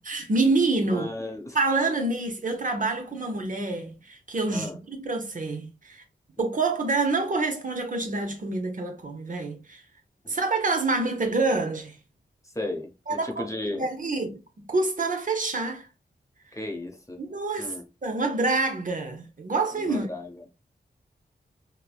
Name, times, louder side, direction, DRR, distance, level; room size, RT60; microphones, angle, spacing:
voice 1, 0.0-1.1 1.5-6.0 6.4-9.8 10.3-12.0 13.1-13.5 13.8-15.9 17.2-17.7 18.0-20.1, right 3 dB, 45° right, 0.7 m, -27 dB
voice 2, 0.9-1.6 4.5-4.8 10.2-10.3 12.4-13.9 16.5-17.2 17.6-17.8 19.7-20.4, left 2 dB, 15° left, 0.7 m, -35 dB
3.1 x 2.1 x 2.3 m
cardioid pair, 50°, 18 cm